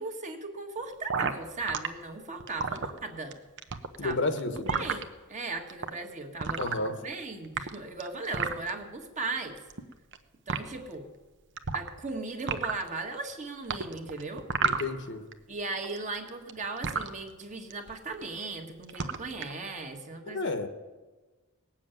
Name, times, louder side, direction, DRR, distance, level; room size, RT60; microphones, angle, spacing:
voice 1, 0.0-3.4 4.0-4.2 4.5-6.6 7.0-9.6 10.5-11.1 11.7-14.5 15.5-20.5, right 3 dB, 35° right, 3 dB, 1.7 m, -37 dB
sound 1, 1.1-1.9 2.4-3.3 3.6-5.0 5.7-5.9 6.4-7.1 7.4-8.7 9.6-10.2 10.5-10.6 11.6-12.1 12.4-12.9 13.7-15.3 15.6-17.1 17.7-17.9 18.2-18.5 18.8-19.5, right 5 dB, 55° right, 1.0 m, -31 dB
voice 2, 4.0-4.9 6.6-7.0 14.6-15.3 20.3-20.7, left 2 dB, 55° left, 9 dB, 1.3 m, -31 dB
18.5 x 7.4 x 9.1 m, 1.2 s
head